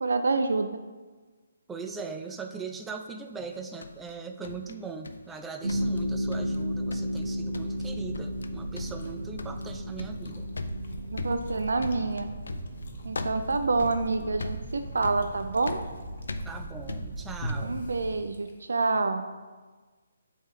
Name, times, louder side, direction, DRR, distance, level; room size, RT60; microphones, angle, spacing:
voice 1, 0.0-0.7 11.1-12.3 13.0-15.8 17.6-19.3, right 3 dB, 80° right, 8 dB, 0.4 m, -27 dB
voice 2, 1.7-10.5 16.4-17.8, right 5 dB, 10° right, 5 dB, 0.3 m, -40 dB
sound 1, 3.4-5.4 5.7-6.6 6.9-7.3 7.5-7.9 8.1-8.5 8.8-17.8, left 3 dB, 80° left, 0.4 m, -40 dB
sound 2, 5.6-18.2, equal, 60° right, 1.3 m, -35 dB
Chewing mastication, 8.8-18.9, equal, 55° left, 1.0 m, -46 dB
8.1 x 3.5 x 3.3 m, 1.3 s
hypercardioid pair, 155°, 0 cm